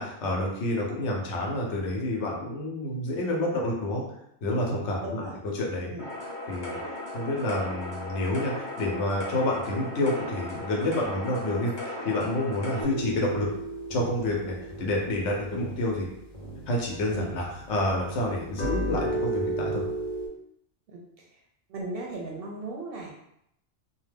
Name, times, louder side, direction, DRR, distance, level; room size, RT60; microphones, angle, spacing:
voice 1, 0.0-4.0 4.4-5.2 5.5-5.9 6.5-6.8 7.1-13.5 13.9-16.1 16.7-19.8, left 1 dB, 75° left, -1 dB, 1.0 m, -29 dB
voice 2, 5.0-5.4 5.9-6.1 17.1-17.4 20.9-21.4 21.7-23.1, right 2 dB, 60° right, -1 dB, 0.6 m, -37 dB
sound 1, 6.0-12.8, left 1 dB, 30° left, 0.5 m, -37 dB
sound 2, 12.7-17.6 17.9-20.3, right 1 dB, 50° left, 0.9 m, -34 dB
2.5 x 2.2 x 3.3 m, 0.77 s
omnidirectional pair, 1.2 m